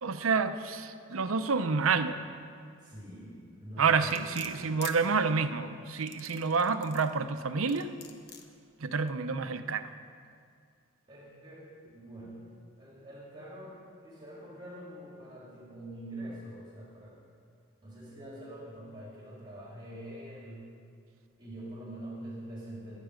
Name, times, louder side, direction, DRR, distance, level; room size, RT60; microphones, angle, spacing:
voice 1, 0.0-2.2 3.8-7.9 8.8-9.9, right 5 dB, 85° right, 10 dB, 0.7 m, -28 dB
voice 2, 2.8-4.7 11.1-12.4 12.8-17.2 17.8-20.7 21.4-23.0, right 1 dB, 20° right, -6 dB, 3.7 m, -45 dB
sound 1, 4.1-5.0 5.9-7.1 7.7-8.5 9.1-9.2, left 7 dB, 50° left, 1.0 m, -45 dB
21.5 x 9.2 x 5.1 m, 2.3 s
head